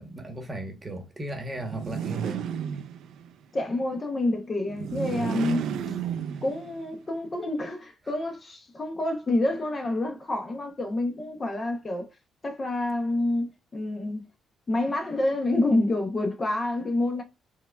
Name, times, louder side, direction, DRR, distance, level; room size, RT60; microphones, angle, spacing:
voice 1, 0.0-2.5, right 2 dB, 25° right, 1.0 m, -36 dB
sound 1, 1.6-3.3 4.7-6.9, right 8 dB, 80° right, 0.3 m, -32 dB
voice 2, 3.5-5.7 6.4-12.1 12.4-14.3 14.7-17.2, left 2 dB, 30° left, 0.6 m, -28 dB
4.6 x 2.2 x 2.2 m
cardioid pair, 90°, 0 cm